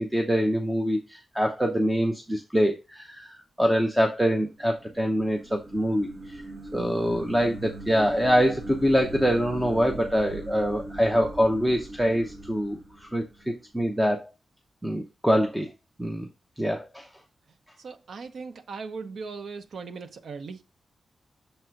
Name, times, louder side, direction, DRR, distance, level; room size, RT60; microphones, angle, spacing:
voice 1, 0.0-6.4 6.7-14.3 14.8-15.7 16.0-16.3 16.6-17.1, equal, 5° right, 0.8 m, -25 dB
sound 1, 4.5-13.6, right 1 dB, 50° right, 1.3 m, -41 dB
voice 2, 17.8-20.6, right 4 dB, 75° right, 0.8 m, -38 dB
6.8 x 3.8 x 4.6 m
wide cardioid pair, 145°, 0 cm